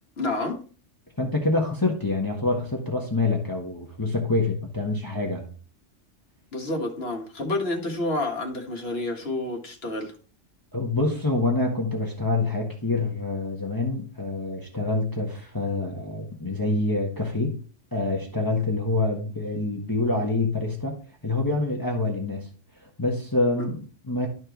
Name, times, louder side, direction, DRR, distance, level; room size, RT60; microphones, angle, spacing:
voice 1, 0.2-0.6 6.5-10.1 23.6-23.7, left 2 dB, 55° left, 2 dB, 1.7 m, -29 dB
voice 2, 1.2-5.5 10.7-17.6 17.9-21.0 21.2-22.5 23.0-24.3, left 2 dB, 15° left, -1 dB, 1.3 m, -26 dB
12.5 x 4.4 x 3.0 m, 0.38 s
omnidirectional pair, 1.3 m